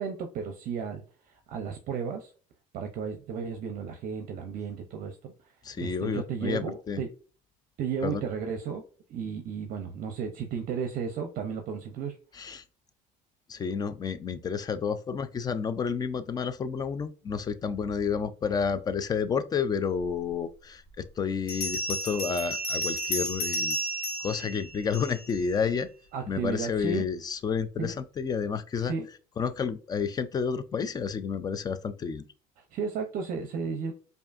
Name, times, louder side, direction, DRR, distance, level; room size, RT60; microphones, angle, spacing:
voice 1, 0.0-2.3 2.7-5.5 5.8-7.1 7.8-8.8 9.1-12.2 26.1-27.0 27.8-27.9 28.8-29.1 32.7-33.9, right 6 dB, 55° right, 0.6 m, -34 dB
voice 2, 5.6-7.0 8.0-8.2 12.3-12.6 13.5-23.8 24.2-25.9 26.3-28.9 29.4-32.2, left 6 dB, 25° left, 0.3 m, -30 dB
Bell, 20.3-20.4 21.5-25.4, equal, 60° left, 1.4 m, -32 dB
4.8 x 2.6 x 2.5 m
cardioid pair, 130°, 18 cm